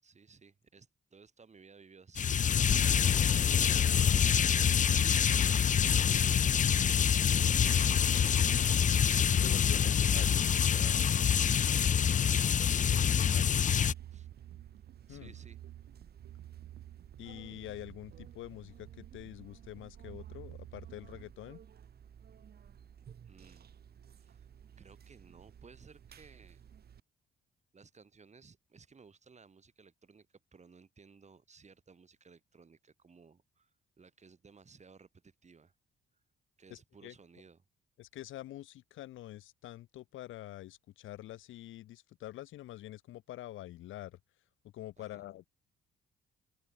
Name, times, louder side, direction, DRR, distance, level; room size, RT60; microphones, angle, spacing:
voice 1, 0.0-9.1 11.0-12.1 14.1-14.3 15.1-15.6 23.3-23.7 24.2-24.5 24.8-26.6 27.7-30.3 30.5-35.7 36.6-37.6 45.0-45.2, right 5 dB, 35° right, 7.3 m, -59 dB
sound 1, 2.1-13.9, left 8 dB, 40° left, 0.6 m, -26 dB
voice 2, 9.1-11.1 12.6-13.6 15.1-15.3 17.2-21.6 36.7-37.1 38.0-44.2 44.7-45.5, left 15 dB, 80° left, 1.3 m, -46 dB
sound 2, 12.2-27.0, right 8 dB, 50° right, 2.6 m, -56 dB
sound 3, 12.3-21.2, right 13 dB, 80° right, 3.2 m, -54 dB
open air
cardioid pair, 90°, 20 cm